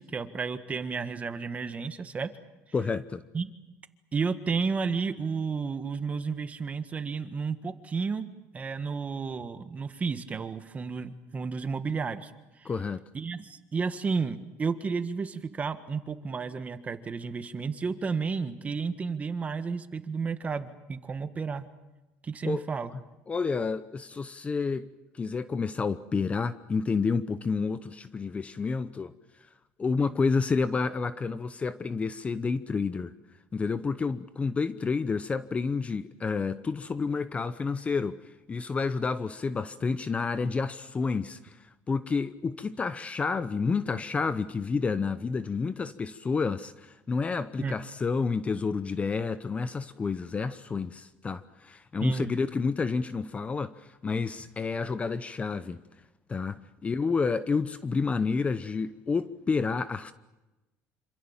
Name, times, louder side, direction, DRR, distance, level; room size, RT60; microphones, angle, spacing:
voice 1, 0.0-2.3 3.3-3.5 4.1-8.3 8.5-12.3 12.6-12.7 13.1-21.7 22.2-22.9 47.6-47.7 52.0-52.3, right 5 dB, 25° right, 1.6 m, -32 dB
voice 2, 2.7-3.2 12.6-13.0 22.4-22.7 23.3-24.9 25.1-29.1 29.8-33.1 33.5-41.6 41.9-55.8 56.3-60.1, left 4 dB, 20° left, 0.8 m, -29 dB
27.0 x 26.0 x 7.3 m
cardioid pair, 130°, 6 cm